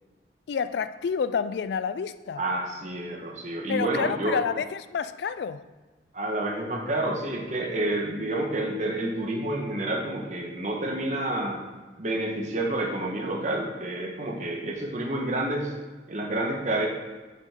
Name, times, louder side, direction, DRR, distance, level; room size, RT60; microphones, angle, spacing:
voice 1, 0.5-2.4 3.7-5.7 14.6-14.7, left 6 dB, 70° left, 13 dB, 0.3 m, -29 dB
voice 2, 2.4-4.4 6.1-11.6 12.0-15.7 16.1-16.9, right 1 dB, 45° right, 0 dB, 1.4 m, -29 dB
7.5 x 6.3 x 3.8 m, 1.3 s
head